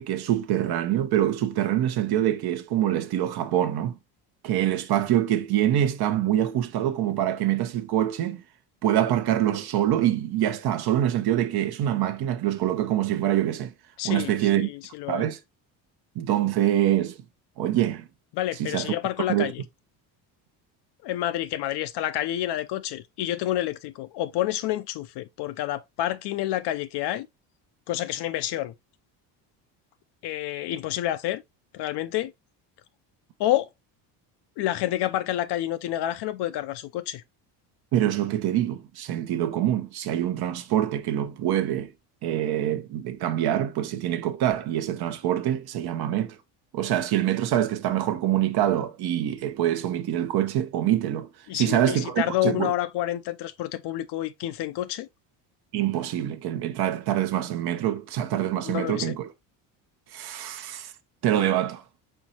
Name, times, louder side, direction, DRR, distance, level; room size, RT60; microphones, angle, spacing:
voice 1, 0.0-4.0 4.4-8.4 8.8-13.7 14.0-14.7 15.1-15.4 16.2-17.2 17.6-18.1 18.6-19.0 19.3-19.5 37.9-41.9 42.2-46.4 46.7-51.3 51.5-52.7 55.7-59.3 60.1-60.9 61.2-61.8, right 12 dB, 55° right, 0.8 m, -25 dB
voice 2, 14.0-15.3 18.3-19.6 21.0-27.3 27.9-28.7 30.2-31.4 31.7-32.3 33.4-33.7 34.6-37.2 51.5-55.1 58.6-59.1, left 13 dB, 60° left, 0.6 m, -29 dB
4.5 x 4.1 x 2.8 m
supercardioid pair, 95°, 46 cm